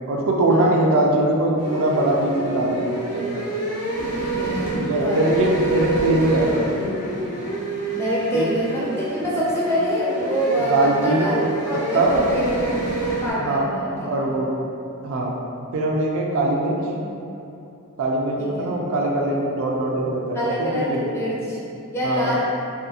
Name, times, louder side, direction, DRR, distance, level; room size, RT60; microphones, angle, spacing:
voice 1, 0.1-3.4 4.8-6.6 8.3-8.5 10.7-11.4 11.9-12.2 13.4-14.5 15.0-15.3 15.7-16.7 18.0-21.1 22.0-22.3, right 1 dB, 60° right, -2 dB, 0.3 m, -21 dB
sound 1, 1.6-13.3, right 2 dB, 40° left, 0.8 m, -28 dB
voice 2, 4.1-5.3 7.9-12.6 13.2-14.1 16.8-17.0 18.4-18.8 20.3-21.6 21.9-22.4, equal, 10° left, -8 dB, 0.4 m, -26 dB
2.7 x 2.6 x 2.4 m, 2.7 s
head